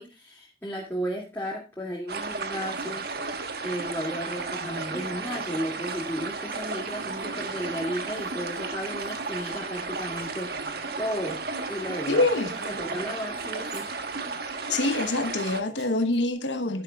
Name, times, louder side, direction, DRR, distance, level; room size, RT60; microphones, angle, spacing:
voice 1, 0.0-3.1 3.6-11.4 11.7-12.2 12.7-13.9, equal, 15° left, 2.5 m, -34 dB
sound 1, 2.1-15.6, right 4 dB, 60° right, 1.4 m, -34 dB
Laughter, 3.8-3.9 4.3-10.9 11.2-11.3 11.6-11.8 12.2-13.2 13.5-14.3 14.7-16.2, right 2 dB, 75° right, 4.2 m, -49 dB
voice 2, 12.1-12.5 14.7-16.8, left 2 dB, 90° left, 1.1 m, -25 dB
11.0 x 11.0 x 2.4 m
head